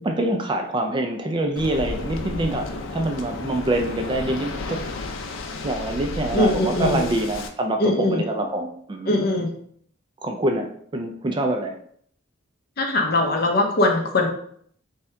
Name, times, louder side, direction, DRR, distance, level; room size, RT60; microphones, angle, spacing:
voice 1, 0.0-4.8 5.3-9.1 10.2-11.7, right 1 dB, 25° right, 4 dB, 0.3 m, -25 dB
Waves surf, 1.6-7.5, left 3 dB, 85° left, 0.4 m, -32 dB
voice 2, 6.3-7.1 7.8-8.2 9.1-9.5 12.8-14.3, left 2 dB, 50° left, 2 dB, 0.7 m, -21 dB
3.5 x 2.7 x 3.3 m, 0.63 s
head